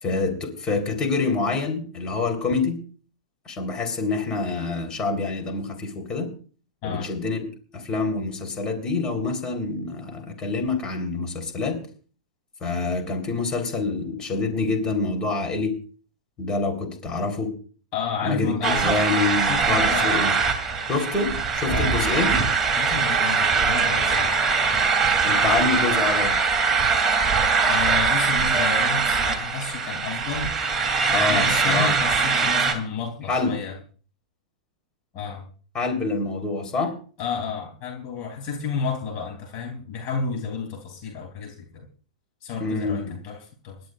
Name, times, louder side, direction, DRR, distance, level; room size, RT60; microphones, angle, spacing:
voice 1, 0.0-2.8 3.5-6.3 6.8-7.5 7.7-11.8 12.6-15.8 16.4-17.5 18.2-20.3 20.9-22.4 25.2-26.4 31.1-31.9 33.3-33.6 35.7-37.0 42.6-43.2, left 3 dB, 25° left, 4 dB, 3.9 m, -26 dB
voice 2, 17.9-20.3 21.7-22.0 22.8-24.3 27.7-30.5 31.1-33.8 35.1-35.4 37.2-41.9 42.4-43.8, left 5 dB, 40° left, 1 dB, 3.3 m, -31 dB
sound 1, 18.6-32.7, right 5 dB, 15° right, 3.0 m, -22 dB
27.0 x 12.0 x 2.5 m, 0.40 s
figure-of-eight pair, 95°, 4 cm